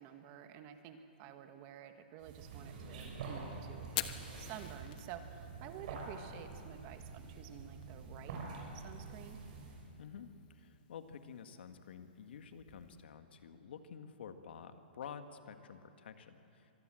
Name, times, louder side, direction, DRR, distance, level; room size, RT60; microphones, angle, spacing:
voice 1, 0.0-8.4 8.7-9.4, right 9 dB, 30° right, 7 dB, 1.6 m, -51 dB
sound 1, 2.2-9.9, right 4 dB, 50° right, 6.4 m, -47 dB
Fire, 3.8-13.0, left 13 dB, 45° left, 1.2 m, -49 dB
voice 2, 10.0-16.7, left 7 dB, 70° left, 8 dB, 1.7 m, -50 dB
25.5 x 20.0 x 7.7 m, 2.7 s
hypercardioid pair, 160°, 6 cm